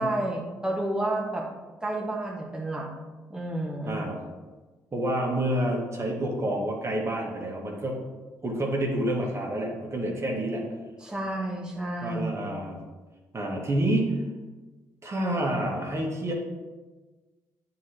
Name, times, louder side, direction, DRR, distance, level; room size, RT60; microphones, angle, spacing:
voice 1, 0.0-1.4 1.8-2.9 3.3-4.0 11.0-12.5, right 1 dB, 10° right, -2 dB, 1.4 m, -30 dB
voice 2, 3.8-4.2 4.9-8.0 8.4-10.6 12.0-12.8 13.3-14.2 15.0-16.3, right 1 dB, 30° right, -1 dB, 1.5 m, -28 dB
9.3 x 3.9 x 2.9 m, 1.2 s
hypercardioid pair, 45°, 9 cm